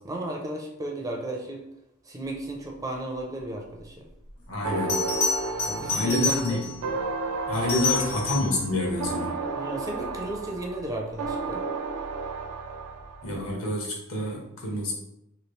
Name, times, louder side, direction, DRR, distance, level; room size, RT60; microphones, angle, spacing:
voice 1, 0.0-1.6 2.1-4.0 5.7-6.6 9.6-11.6, right 2 dB, 15° right, 0 dB, 0.4 m, -34 dB
Bell, 4.3-4.4 4.9-6.8 7.5-8.6 11.3-11.5, left 5 dB, 90° left, 1.3 m, -29 dB
voice 2, 4.5-4.9 5.9-6.6 7.5-9.3 13.2-14.9, left 1 dB, 70° left, -1 dB, 1.0 m, -28 dB
sound 1, 4.6-13.4, right 3 dB, 90° right, 0.4 m, -33 dB
3.0 x 2.7 x 3.1 m, 0.84 s
head